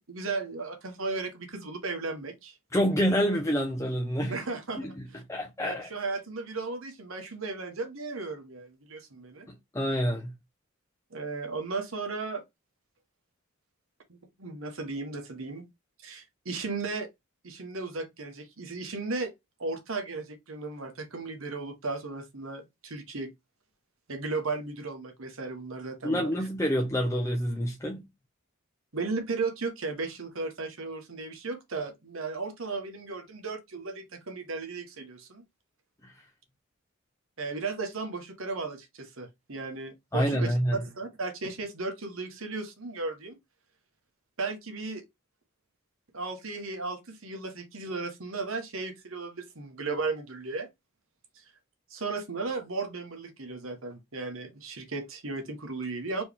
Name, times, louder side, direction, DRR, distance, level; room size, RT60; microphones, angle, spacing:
voice 1, 0.1-2.6 4.3-5.2 5.6-9.5 11.1-12.4 14.1-15.6 16.0-17.1 17.4-19.3 19.6-23.3 24.1-26.3 28.9-35.4 37.4-40.5 40.8-43.4 44.4-45.0 46.1-50.7 51.3-51.4 51.9-56.2, right 3 dB, 70° right, 1.2 m, -35 dB
voice 2, 2.7-4.4 4.8-5.0 5.3-5.9 9.5-10.3 26.0-28.0 36.0-36.1 40.1-40.8, equal, 15° left, 0.6 m, -27 dB
4.5 x 2.9 x 3.5 m
head